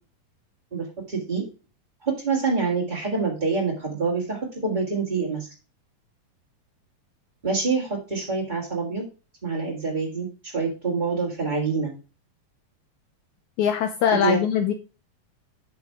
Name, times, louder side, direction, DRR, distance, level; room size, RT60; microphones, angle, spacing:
voice 1, 0.7-1.4 2.0-5.5 7.4-9.0 9.4-11.9 14.1-14.4, right 4 dB, 20° right, -5 dB, 1.5 m, -26 dB
voice 2, 13.6-14.7, left 8 dB, 85° left, 8 dB, 1.7 m, -22 dB
9.5 x 5.3 x 4.7 m, 0.32 s
omnidirectional pair, 4.2 m